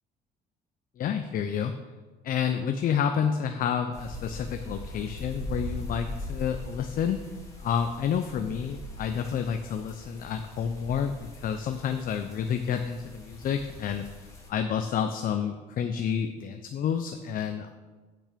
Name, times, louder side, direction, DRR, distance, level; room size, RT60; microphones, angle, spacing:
voice 1, 1.0-1.7 2.2-7.2 7.6-14.1 14.5-17.7, left 7 dB, 50° left, 7 dB, 0.6 m, -29 dB
sound 1, 3.9-14.5, left 1 dB, 15° left, 2.2 m, -41 dB
8.9 x 6.0 x 5.1 m, 1.3 s
cardioid pair, 100°, 18 cm